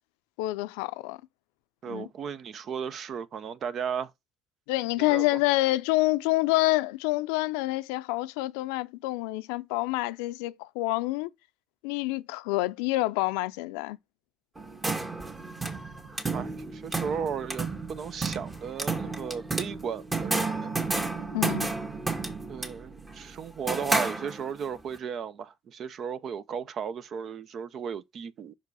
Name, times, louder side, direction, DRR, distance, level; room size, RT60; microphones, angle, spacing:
voice 1, 0.4-1.2 1.9-2.1 4.7-11.3 11.8-14.0 21.3-21.7, left 19 dB, 85° left, 0.4 m, -27 dB
voice 2, 1.8-4.1 5.0-5.3 16.3-20.7 22.5-28.5, right 7 dB, 60° right, 0.6 m, -35 dB
sound 1, 14.6-24.7, right 3 dB, 30° right, 1.9 m, -32 dB
5.9 x 4.7 x 4.7 m
hypercardioid pair, 55°, 0 cm